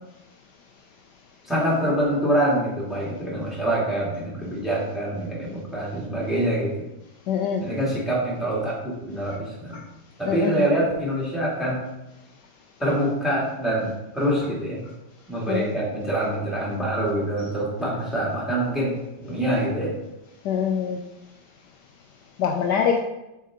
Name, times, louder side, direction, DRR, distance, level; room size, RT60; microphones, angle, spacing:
voice 1, 1.4-6.9 7.6-9.8 10.2-11.8 12.8-14.8 15.3-20.0, right 1 dB, ahead, -6 dB, 2.0 m, -25 dB
voice 2, 7.3-7.7 9.7-9.8 10.3-10.6 15.5-15.7 20.4-21.0 22.4-23.0, left 7 dB, 75° left, 2 dB, 1.1 m, -24 dB
7.3 x 4.7 x 3.6 m, 0.95 s
omnidirectional pair, 2.0 m